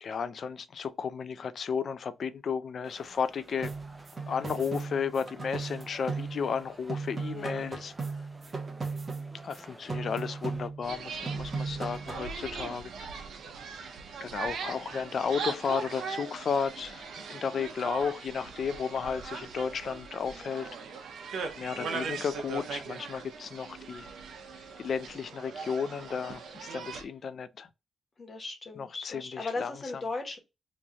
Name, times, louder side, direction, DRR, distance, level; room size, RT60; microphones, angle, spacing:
voice 1, 0.0-3.7 4.3-7.9 9.4-12.9 14.2-20.7 21.6-24.1 24.8-27.7 28.8-29.7, left 6 dB, 55° left, 0.5 m, -33 dB
sound 1, 2.8-10.7, right 2 dB, 15° right, 0.6 m, -53 dB
sound 2, 3.6-6.6 6.9-9.6 9.9-11.0 11.3-12.3, right 4 dB, 30° right, 1.0 m, -37 dB
sound 3, 10.8-27.0, right 5 dB, 80° right, 0.8 m, -40 dB
voice 2, 21.7-22.1 28.2-30.4, left 3 dB, 35° left, 1.3 m, -37 dB
3.2 x 2.7 x 3.5 m
cardioid pair, 125°, 0 cm